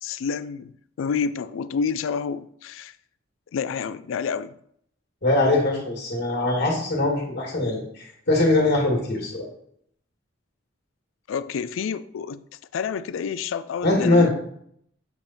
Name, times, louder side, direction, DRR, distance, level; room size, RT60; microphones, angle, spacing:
voice 1, 0.0-3.0 3.5-4.5 11.3-12.4 12.7-14.3, left 6 dB, 80° left, 0.3 m, -29 dB
voice 2, 5.2-9.5 13.8-14.3, left 2 dB, 60° left, 2.1 m, -22 dB
8.1 x 3.4 x 4.2 m
head